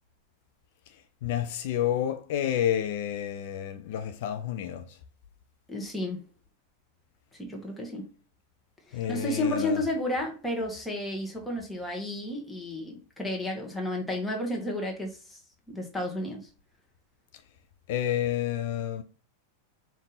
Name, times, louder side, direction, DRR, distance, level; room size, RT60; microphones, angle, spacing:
voice 1, 1.2-5.0 8.9-9.8 17.9-19.0, left 10 dB, 50° left, 0.5 m, -29 dB
voice 2, 5.7-6.2 7.4-8.1 8.9-15.4 15.7-16.5, left 1 dB, 5° left, 1.2 m, -32 dB
5.1 x 2.6 x 4.0 m
figure-of-eight pair, 90°, 0 cm